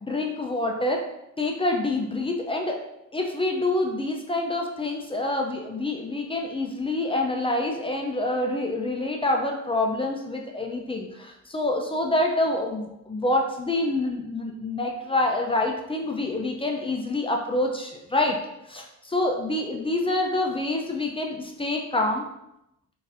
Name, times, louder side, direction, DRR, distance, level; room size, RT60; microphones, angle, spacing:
voice 1, 0.0-1.0 1.4-2.8 3.1-18.4 18.7-22.3, left 2 dB, 20° left, 2 dB, 0.4 m, -26 dB
3.8 x 2.6 x 2.5 m, 0.84 s
cardioid pair, 90°, 30 cm